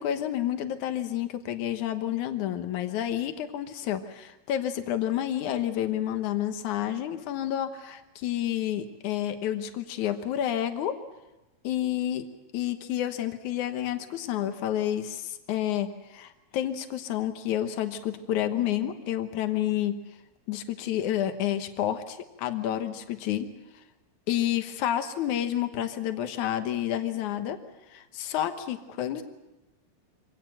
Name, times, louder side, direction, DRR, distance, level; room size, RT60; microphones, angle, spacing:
voice 1, 0.0-11.0 11.6-12.2 12.5-20.0 20.5-23.5 24.3-27.6 27.9-29.2, left 11 dB, 75° left, 8 dB, 2.7 m, -29 dB
25.5 x 18.5 x 7.8 m, 1.0 s
omnidirectional pair, 3.5 m